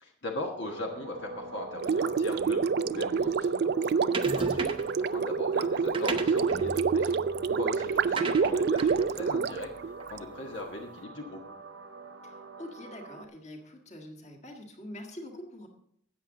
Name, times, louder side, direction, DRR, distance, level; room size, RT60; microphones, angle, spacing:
voice 1, 0.0-11.4, left 2 dB, 60° left, 1 dB, 1.3 m, -40 dB
sound 1, 0.6-13.2, right 2 dB, 70° right, 0.8 m, -43 dB
Gurgling, 1.8-10.2, right 5 dB, 55° right, 0.3 m, -27 dB
sound 2, 4.1-5.0 5.7-10.4, right 3 dB, 25° right, 0.8 m, -38 dB
voice 2, 7.9-8.5 12.2-15.7, left 1 dB, 35° left, 2 dB, 1.7 m, -45 dB
13.5 x 8.5 x 3.8 m, 0.70 s
head